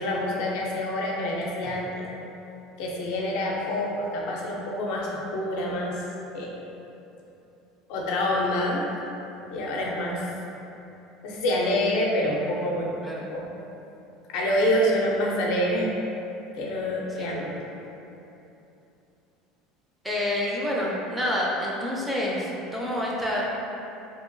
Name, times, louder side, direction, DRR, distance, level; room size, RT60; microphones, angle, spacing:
voice 1, 0.0-2.0 2.8-6.0 6.3-6.6 7.9-8.9 9.5-10.3 11.2-13.5 14.3-15.9 16.6-17.6, left 1 dB, 70° left, -2 dB, 0.4 m, -27 dB
voice 2, 17.2-17.7 20.0-23.5, left 1 dB, 5° right, -5 dB, 0.4 m, -28 dB
2.8 x 2.1 x 2.5 m, 2.9 s
cardioid pair, 140°, 0 cm